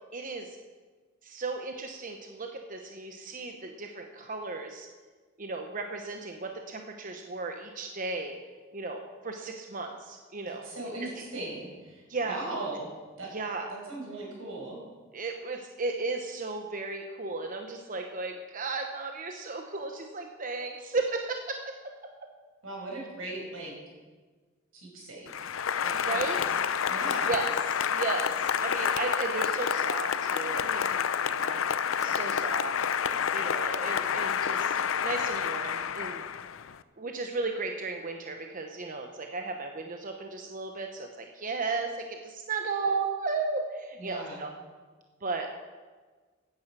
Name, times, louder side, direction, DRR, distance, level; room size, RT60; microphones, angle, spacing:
voice 1, 0.1-0.6 1.2-4.9 5.4-8.4 8.7-10.7 11.0-11.2 12.1-12.4 13.3-13.7 15.1-21.6 26.0-26.5 27.3-27.5 27.9-31.6 32.0-32.8 33.3-34.7 35.0-36.2 37.0-44.5 45.2-45.5, right 3 dB, 40° right, 4 dB, 1.0 m, -35 dB
voice 2, 10.4-12.9 13.2-13.3 13.7-14.8 22.6-23.7 24.7-25.5 25.8-26.5 26.8-27.3 44.0-44.4, right 2 dB, 85° right, -2 dB, 5.5 m, -39 dB
Applause, 25.3-36.8, left 7 dB, 80° left, 0.6 m, -29 dB
15.5 x 9.4 x 6.1 m, 1.4 s
head